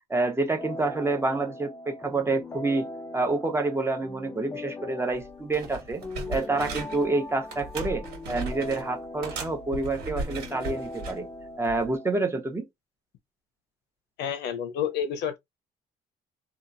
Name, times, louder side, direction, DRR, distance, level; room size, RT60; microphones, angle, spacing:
voice 1, 0.1-2.9 3.1-6.0 6.3-11.3 11.6-12.7, right 3 dB, 15° right, 0.8 m, -28 dB
sound 1, 0.6-12.2, left 2 dB, 15° left, 0.4 m, -40 dB
sound 2, 5.1-5.3 5.5-7.1 7.5-8.9 9.2-11.2 11.7-11.9, right 3 dB, 75° right, 1.5 m, -36 dB
voice 2, 14.2-15.4, left 8 dB, 80° left, 0.7 m, -29 dB
2.9 x 2.4 x 2.5 m
cardioid pair, 110°, 17 cm